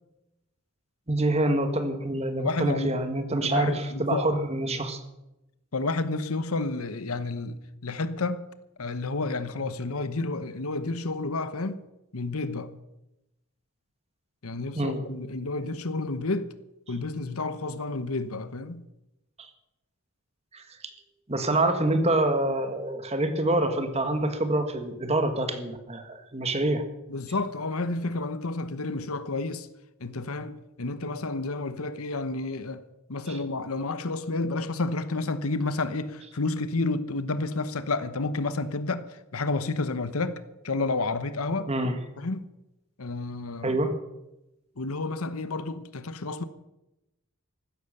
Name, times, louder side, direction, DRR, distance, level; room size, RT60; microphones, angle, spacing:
voice 1, 1.1-5.0 14.7-15.0 19.4-19.5 20.5-20.6 21.3-26.8 33.3-33.4 41.7-41.9 43.6-43.9, right 1 dB, 30° right, 1.7 m, -26 dB
voice 2, 2.4-3.0 3.4-4.2 5.7-7.6 7.8-8.5 8.8-11.8 12.1-12.7 14.4-16.5 16.9-18.8 27.1-29.7 30.0-32.8 33.1-41.7 42.2-42.5 43.0-43.7 44.8-46.4, left 3 dB, 75° left, 1.0 m, -30 dB
15.5 x 12.5 x 6.7 m
head